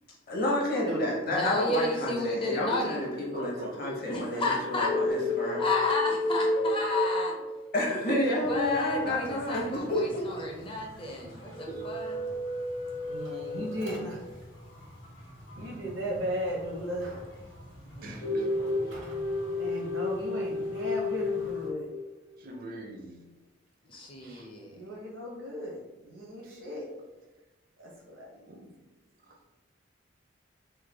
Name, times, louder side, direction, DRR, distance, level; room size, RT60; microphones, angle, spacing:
voice 1, 0.3-5.6 7.7-10.2, left 1 dB, 50° left, -2 dB, 0.9 m, -30 dB
voice 2, 1.3-3.0 4.1-4.9 5.6-7.4 8.4-12.2 23.8-24.8, left 2 dB, 25° left, 0 dB, 0.5 m, -31 dB
voice 3, 3.3-6.1 7.7-8.0 9.7-9.9 11.7-11.9 18.0-18.5 19.7-19.8 22.4-23.3 23.9-24.5 28.5-29.5, right 1 dB, 45° right, 2 dB, 0.5 m, -44 dB
sound 1, 4.8-8.0 11.5-14.1 18.2-22.0, left 2 dB, 90° left, 0.6 m, -31 dB
sound 2, 8.4-21.7, equal, 65° left, 1.2 m, -49 dB
voice 4, 13.0-14.3 15.6-17.3 18.9-19.2 19.5-21.9 24.7-26.9 27.8-28.3, equal, 85° right, -2 dB, 0.9 m, -36 dB
3.1 x 2.2 x 3.4 m, 1.1 s
head